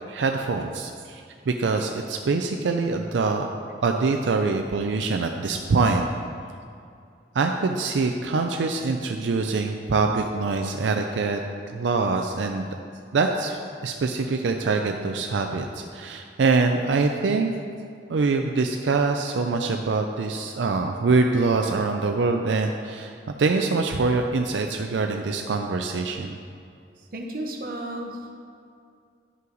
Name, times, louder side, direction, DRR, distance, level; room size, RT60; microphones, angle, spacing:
voice 1, 0.1-3.5 3.8-6.1 7.3-11.4 11.7-12.7 13.1-17.5 18.1-26.4, right 4 dB, 85° right, 4 dB, 0.4 m, -24 dB
voice 2, 27.1-28.3, right 1 dB, 55° right, 2 dB, 0.9 m, -33 dB
11.0 x 5.5 x 3.9 m, 2.4 s
head